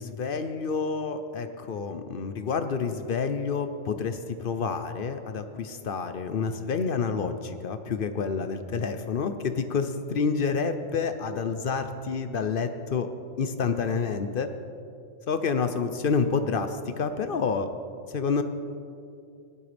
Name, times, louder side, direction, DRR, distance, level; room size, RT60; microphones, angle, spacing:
voice 1, 0.0-13.1 13.4-14.5 15.3-17.7 18.1-18.4, left 5 dB, 55° left, 9 dB, 0.7 m, -28 dB
17.5 x 11.0 x 3.4 m, 2.5 s
omnidirectional pair, 1.3 m